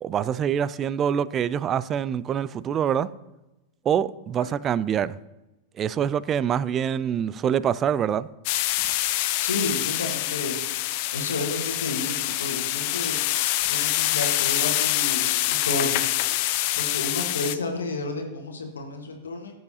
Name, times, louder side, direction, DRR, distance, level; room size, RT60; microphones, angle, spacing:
voice 1, 0.0-3.1 3.9-5.2 5.8-8.3, right 8 dB, 25° right, 0.3 m, -25 dB
sound 1, 8.5-17.6, left 16 dB, 45° left, 0.5 m, -25 dB
voice 2, 9.4-10.6 11.1-13.2 13.7-16.0 16.8-19.5, left 2 dB, 70° left, 1.5 m, -31 dB
16.0 x 7.6 x 2.8 m
figure-of-eight pair, 90°, 0 cm